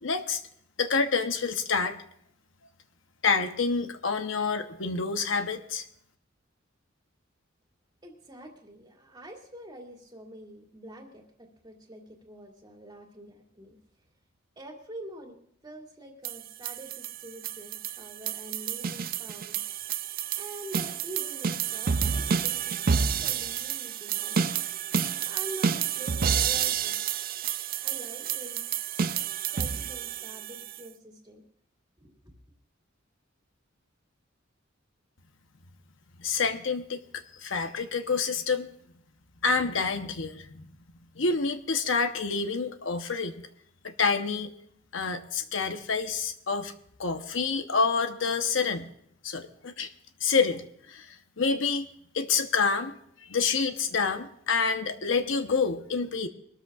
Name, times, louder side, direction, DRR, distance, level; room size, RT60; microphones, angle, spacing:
voice 1, 0.0-0.4 0.8-2.0 3.2-5.8 36.2-38.7 39.4-40.7 41.2-43.4 43.8-44.5 44.9-46.7 47.0-48.8 49.2-49.9 50.2-51.9 52.1-52.9 53.2-56.3, left 5 dB, 65° left, 7 dB, 0.9 m, -28 dB
voice 2, 8.0-13.8 14.6-19.6 20.4-22.8 23.2-24.4 25.1-27.0 27.8-28.6 29.5-31.4 32.0-32.3, right 1 dB, 20° right, 1 dB, 2.3 m, -45 dB
sound 1, 16.2-30.8, right 7 dB, 45° right, 0.5 m, -30 dB
22.5 x 13.0 x 2.4 m, 0.67 s
head